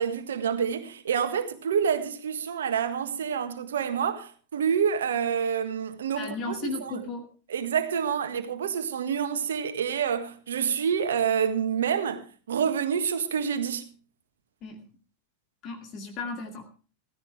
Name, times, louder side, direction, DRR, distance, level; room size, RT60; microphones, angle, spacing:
voice 1, 0.0-7.1 7.5-13.9, right 7 dB, 65° right, 1.7 m, -28 dB
voice 2, 6.2-7.2 14.6-14.8 15.6-16.7, left 3 dB, 35° left, 2.4 m, -35 dB
16.0 x 15.5 x 3.4 m
figure-of-eight pair, 90°, 0 cm